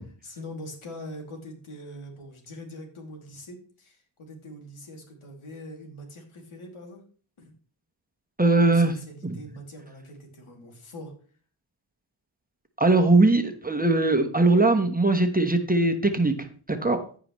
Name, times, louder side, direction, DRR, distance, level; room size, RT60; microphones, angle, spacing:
voice 1, 0.0-7.0 7.4-7.5 8.6-11.1, left 1 dB, 80° left, 1 dB, 2.7 m, -43 dB
voice 2, 8.4-8.9 9.2-9.3 12.8-17.0, right 2 dB, 15° right, 6 dB, 1.1 m, -21 dB
14.5 x 5.0 x 3.1 m, 0.42 s
cardioid pair, 60°, 49 cm